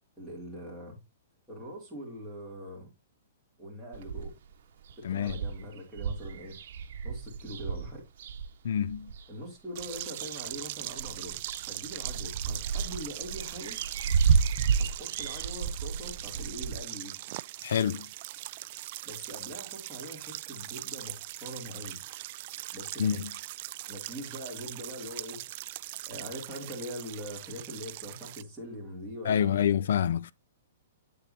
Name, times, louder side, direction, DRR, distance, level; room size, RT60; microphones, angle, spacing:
voice 1, 0.2-1.0 1.5-2.9 3.6-4.3 5.0-6.6 7.0-8.0 9.3-13.8 14.5-17.1 19.0-22.0 22.7-23.3 23.9-25.8 26.1-29.7, equal, ahead, 3.0 m, -42 dB
sound 1, 3.9-4.5 4.9-5.0 5.2-9.3 9.8-10.6 10.9-16.8, right 6 dB, 55° right, 1.3 m, -31 dB
voice 2, 5.0-5.4 8.6-9.1 17.6-18.1 23.0-23.3 29.2-30.3, left 9 dB, 70° left, 0.3 m, -27 dB
sound 2, 9.8-28.4, right 17 dB, 40° right, 0.3 m, -40 dB
8.6 x 6.8 x 2.8 m
hypercardioid pair, 160°, 0 cm